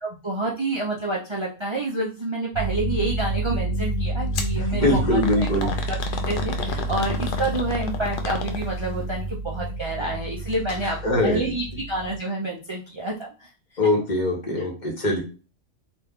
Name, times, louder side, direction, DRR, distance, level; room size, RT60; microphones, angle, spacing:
voice 1, 0.0-13.5 14.6-14.7, right 2 dB, 50° right, -2 dB, 0.3 m, -29 dB
sound 1, 2.5-12.2, right 2 dB, 80° left, 1.1 m, -29 dB
sound 2, 4.3-4.6 5.2-8.9 10.5-10.8 11.2-11.3 12.1-12.2, left 6 dB, 65° left, 0.5 m, -32 dB
voice 2, 4.5-5.7 11.0-11.5 13.8-15.2, left 1 dB, 40° left, -1 dB, 1.0 m, -22 dB
2.9 x 2.3 x 3.6 m, 0.34 s
omnidirectional pair, 1.4 m